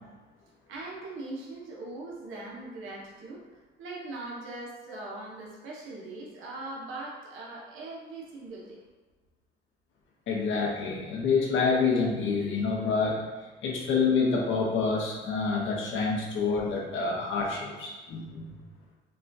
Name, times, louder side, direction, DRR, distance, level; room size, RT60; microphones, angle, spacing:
voice 1, 0.7-8.8, right 2 dB, 80° right, -3 dB, 0.9 m, -41 dB
voice 2, 10.3-13.2 13.6-18.5, left 4 dB, 75° left, -2 dB, 1.0 m, -27 dB
5.8 x 2.3 x 2.6 m, 1.2 s
cardioid pair, 90°, 20 cm